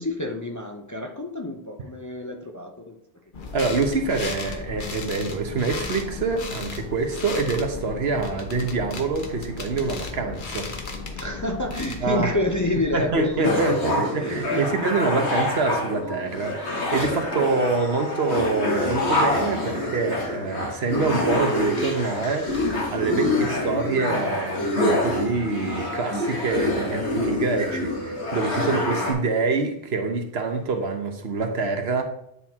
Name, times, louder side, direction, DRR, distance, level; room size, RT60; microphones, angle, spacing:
voice 1, 0.0-3.0 11.2-14.8, left 2 dB, 20° left, 3 dB, 0.5 m, -29 dB
sound 1, 3.3-13.5, left 4 dB, 50° left, 1.0 m, -35 dB
voice 2, 3.5-10.7 12.0-12.3 12.9-32.0, right 4 dB, 70° right, 5 dB, 1.3 m, -26 dB
sound 2, 13.4-29.1, left 1 dB, 90° left, 2.0 m, -26 dB
9.9 x 4.4 x 3.6 m, 0.74 s
omnidirectional pair, 1.1 m